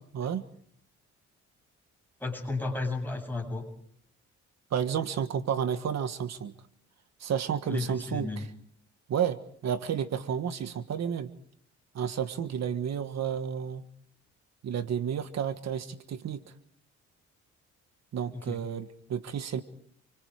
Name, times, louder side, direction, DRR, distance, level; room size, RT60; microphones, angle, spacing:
voice 1, 0.1-0.4 4.7-6.5 7.2-8.4 9.1-11.3 11.9-13.8 14.6-16.4 18.1-19.6, right 8 dB, 60° right, 11 dB, 1.5 m, -31 dB
voice 2, 2.2-3.7 7.7-8.4 18.3-18.6, left 3 dB, 5° left, 2 dB, 7.8 m, -33 dB
29.0 x 25.0 x 4.9 m, 0.65 s
cardioid pair, 90°, 30 cm